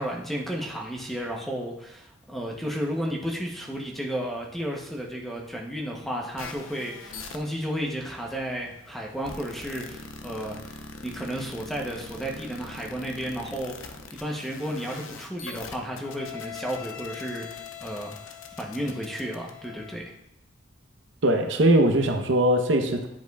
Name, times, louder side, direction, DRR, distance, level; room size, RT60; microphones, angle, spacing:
voice 1, 0.0-20.1, equal, ahead, -1 dB, 0.7 m, -33 dB
sound 1, 6.4-19.9, left 5 dB, 85° left, 0.7 m, -42 dB
voice 2, 21.2-23.1, right 1 dB, 70° right, 4 dB, 0.7 m, -21 dB
10.5 x 4.9 x 2.3 m, 0.81 s
head